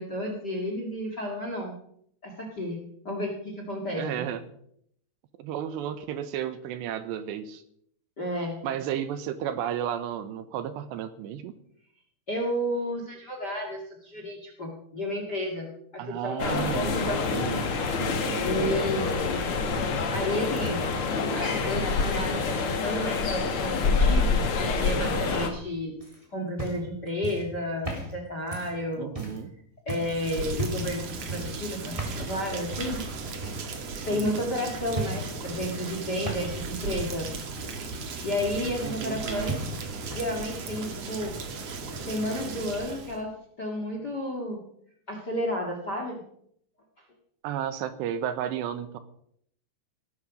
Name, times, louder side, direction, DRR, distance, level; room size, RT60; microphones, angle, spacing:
voice 1, 0.0-1.7 2.2-4.0 8.2-8.6 12.3-16.7 18.4-19.4 20.1-20.8 21.3-25.9 26.3-29.1 29.8-33.0 34.0-37.3 38.2-39.6 40.1-41.3 41.7-41.8 42.0-43.3 43.6-44.6 45.1-46.2, left 1 dB, 35° left, 3 dB, 1.7 m, -32 dB
voice 2, 4.0-4.4 5.4-7.6 8.6-11.5 16.0-18.6 29.0-29.5 34.1-34.4 38.8-39.5 47.4-49.0, right 10 dB, 75° right, 12 dB, 2.9 m, -33 dB
sound 1, 16.4-25.5, left 4 dB, 75° left, 1.2 m, -26 dB
sound 2, 26.0-29.4 29.9-30.2 30.5-30.9 31.3-31.6 32.0-32.3 32.7-33.0 33.4-33.9 34.2-34.5 34.9-35.3 35.6-36.7 37.0-39.2 39.5-40.3 40.6-41.1 42.0-42.1, right 2 dB, 10° right, 2.5 m, -36 dB
Rain, 30.0-43.2, right 4 dB, 50° right, 2.0 m, -36 dB
18.0 x 12.5 x 5.2 m, 0.69 s
omnidirectional pair, 5.4 m